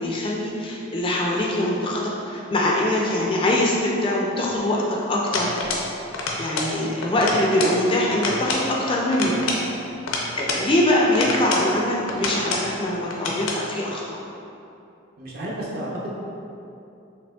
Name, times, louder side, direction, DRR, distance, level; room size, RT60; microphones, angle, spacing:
voice 1, 0.0-5.5 6.4-9.4 10.3-14.2, left 1 dB, 25° left, -3 dB, 0.3 m, -23 dB
sound 1, 5.3-5.9 6.1-6.8 7.0-7.8 8.1-8.7 9.1-10.7 11.1-11.7 12.1-12.7 13.1-13.6, left 2 dB, 85° left, 0.5 m, -27 dB
voice 2, 15.2-16.1, right 1 dB, 45° right, -5 dB, 0.6 m, -32 dB
5.0 x 2.9 x 2.3 m, 2.8 s
head